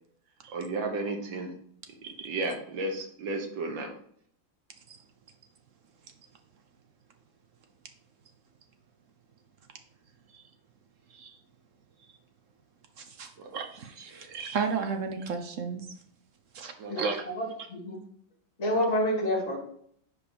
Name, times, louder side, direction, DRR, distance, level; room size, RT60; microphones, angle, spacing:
voice 1, 0.5-1.5 2.2-3.9 13.4-13.5 16.8-16.9, right 2 dB, 90° right, 3 dB, 1.8 m, -33 dB
voice 2, 13.0-15.9 16.5-17.2, right 5 dB, 60° right, 6 dB, 0.9 m, -34 dB
voice 3, 16.9-18.0 18.6-19.6, left 1 dB, 40° left, -3 dB, 2.3 m, -28 dB
5.0 x 5.0 x 5.1 m, 0.64 s
omnidirectional pair, 2.0 m